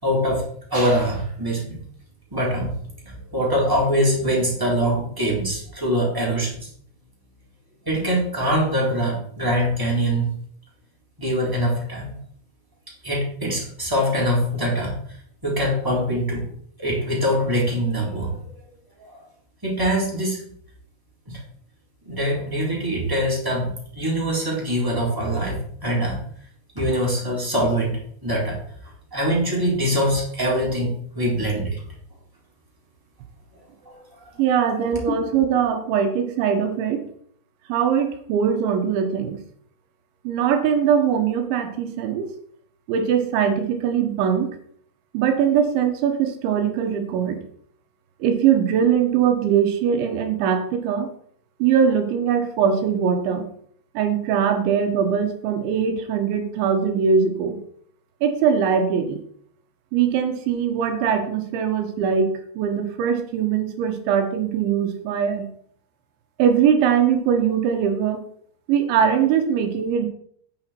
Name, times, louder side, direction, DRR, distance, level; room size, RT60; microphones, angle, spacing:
voice 1, 0.0-0.4 0.7-1.8 2.3-2.7 3.0-6.7 7.8-10.3 11.2-12.1 13.0-15.0 15.4-16.4 16.8-18.5 19.0-19.2 19.6-20.4 21.3-21.4 22.0-26.2 26.7-28.6 29.1-31.8 33.8-33.9, equal, 5° right, -4 dB, 3.0 m, -23 dB
voice 2, 34.4-37.0 37.7-39.4 40.2-42.3 42.9-44.5 45.1-47.4 48.2-51.1 51.6-53.5 53.9-57.6 58.2-59.2 59.9-65.5 66.4-68.2 68.7-70.1, right 7 dB, 75° right, 6 dB, 3.2 m, -21 dB
10.0 x 9.0 x 4.5 m, 0.63 s
omnidirectional pair, 5.9 m